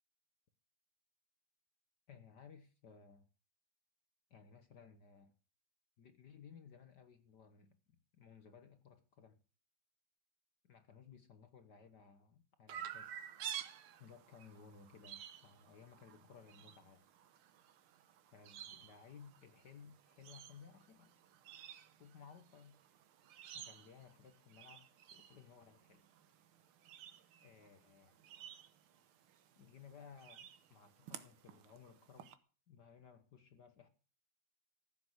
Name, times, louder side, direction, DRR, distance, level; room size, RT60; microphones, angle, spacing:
voice 1, 2.1-3.3 4.3-5.3 6.0-7.8 8.1-9.4 10.6-13.3 14.0-17.1 18.3-21.1 22.0-22.8 23.5-26.0 27.4-28.2 29.6-32.4 32.7-33.9, left 6 dB, 65° left, 1.0 m, -59 dB
Chirp tweet, 12.7-32.3, right 9 dB, 60° right, 1.6 m, -53 dB
15.5 x 7.5 x 7.9 m
omnidirectional pair, 3.3 m